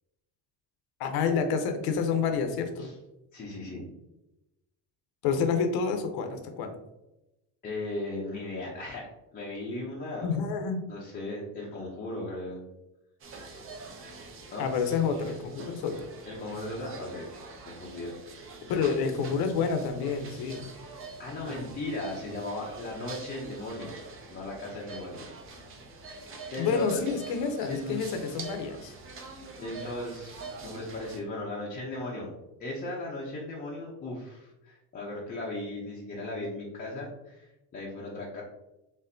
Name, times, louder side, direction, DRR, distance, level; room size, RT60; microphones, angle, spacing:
voice 1, 1.0-2.9 5.2-6.7 10.2-10.8 14.6-16.1 18.7-20.7 26.6-28.9, left 5 dB, 55° left, 7 dB, 0.7 m, -28 dB
voice 2, 3.3-3.9 7.6-9.1 9.3-10.4 10.9-12.6 14.5-14.7 16.2-17.3 17.6-18.1 20.3-20.6 21.2-24.0 24.3-25.3 26.5-27.0 27.7-28.1 29.1-32.3 32.6-38.4, left 2 dB, 20° left, -5 dB, 0.6 m, -37 dB
sound 1, 13.2-31.2, right 3 dB, 30° right, 0.5 m, -45 dB
4.2 x 3.5 x 2.6 m, 0.94 s
cardioid pair, 170°, 45 cm